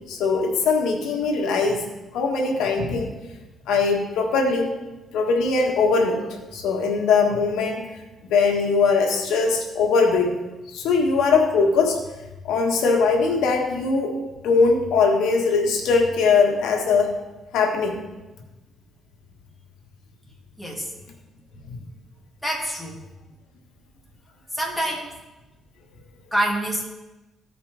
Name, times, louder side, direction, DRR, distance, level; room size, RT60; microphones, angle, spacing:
voice 1, 0.1-1.9 2.1-3.2 3.7-4.7 5.1-6.3 6.5-8.0 8.3-10.3 10.7-12.0 12.4-14.1 14.4-17.1 17.5-18.0 21.7-21.8, left 4 dB, 85° left, 2 dB, 1.4 m, -21 dB
voice 2, 20.6-20.9 22.4-23.0 24.5-25.1 26.3-26.8, right 1 dB, 5° left, -2 dB, 2.3 m, -26 dB
14.5 x 5.0 x 3.4 m, 1.1 s
cardioid pair, 90°, 0 cm